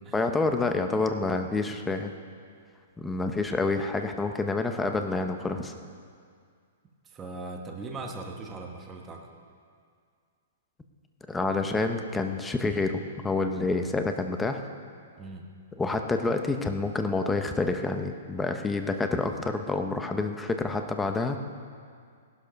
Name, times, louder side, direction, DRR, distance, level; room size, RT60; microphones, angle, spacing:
voice 1, 0.1-2.1 3.0-5.7 11.3-14.6 15.8-21.4, left 3 dB, 5° left, 6 dB, 0.8 m, -28 dB
voice 2, 7.0-9.3 15.2-15.5, right 3 dB, 15° right, 1 dB, 1.2 m, -40 dB
17.0 x 12.0 x 5.2 m, 2.2 s
hypercardioid pair, 160°, 0 cm